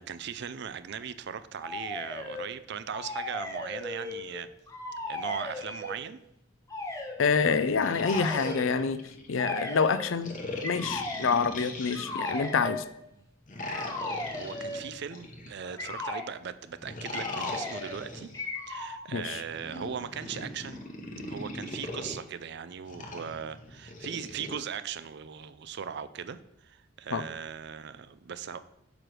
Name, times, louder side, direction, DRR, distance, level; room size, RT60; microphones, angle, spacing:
voice 1, 0.0-4.5 5.1-6.2 13.2-13.3 14.0-18.3 18.7-20.8 21.3-28.6, right 7 dB, 60° right, 13 dB, 0.5 m, -39 dB
sound 1, 1.6-2.5 2.9-4.4 4.7-6.0 6.7-7.2 8.0-8.7 9.4-10.1 10.6-11.4 11.9-12.9 13.7-14.9 15.8-16.3 17.1-18.0 18.3-19.0, left 2 dB, 15° left, 1.4 m, -36 dB
voice 2, 7.2-9.0 9.3-10.3 10.6-12.8 19.1-19.4 27.1-27.2, left 5 dB, 75° left, 13 dB, 0.5 m, -27 dB
sound 2, 7.6-9.4 10.2-12.6 13.5-16.0 16.8-18.4 19.4-22.2 22.9-24.6, left 2 dB, 40° left, 1.1 m, -40 dB
8.9 x 3.3 x 6.1 m, 0.82 s
head